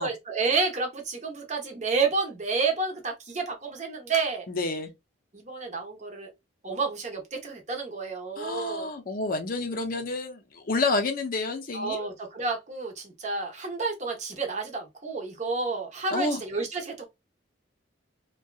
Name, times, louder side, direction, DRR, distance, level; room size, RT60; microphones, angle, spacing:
voice 1, 0.0-4.4 5.3-6.3 6.6-8.9 11.7-17.1, right 4 dB, 35° right, 0.8 m, -30 dB
voice 2, 4.5-4.9 8.4-12.1 16.1-16.4, left 3 dB, 45° left, 0.5 m, -29 dB
2.7 x 2.2 x 2.3 m
head